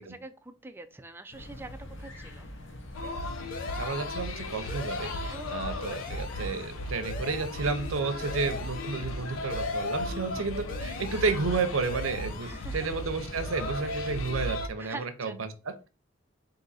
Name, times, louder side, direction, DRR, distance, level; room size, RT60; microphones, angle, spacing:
voice 1, 0.0-2.5 5.3-6.3 10.4-10.5 12.4-12.8 14.8-15.4, right 3 dB, 10° right, 8 dB, 0.3 m, -45 dB
sound 1, 1.3-14.5, left 1 dB, 65° left, 0.9 m, -45 dB
sound 2, 2.9-14.7, left 1 dB, 90° left, 0.6 m, -36 dB
sound 3, 3.5-4.4 4.7-5.5 5.8-6.7 7.0-7.9 8.2-9.1 9.5-10.4 10.7-11.5 11.8-12.7, left 4 dB, 45° left, 0.5 m, -43 dB
voice 2, 3.7-5.1 5.5-15.5, right 4 dB, 90° right, 8 dB, 0.6 m, -31 dB
3.8 x 2.7 x 4.0 m, 0.32 s
head